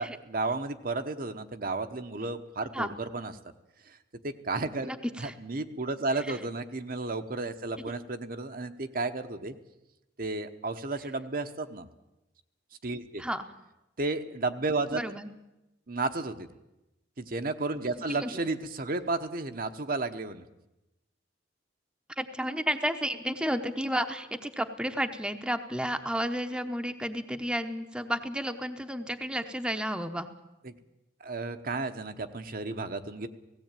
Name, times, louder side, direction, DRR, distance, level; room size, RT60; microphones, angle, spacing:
voice 1, 0.0-3.3 3.8-4.0 4.2-4.9 5.2-9.5 10.2-11.9 12.8-13.2 14.0-15.0 15.9-16.5 17.2-20.4 30.6-30.7 31.2-33.3, right 3 dB, 50° right, 7 dB, 1.1 m, -33 dB
voice 2, 4.8-5.3 6.3-6.4 13.2-13.4 14.9-15.3 18.2-18.4 22.2-30.3, equal, 5° right, 6 dB, 0.9 m, -32 dB
17.0 x 17.0 x 9.1 m, 0.95 s
head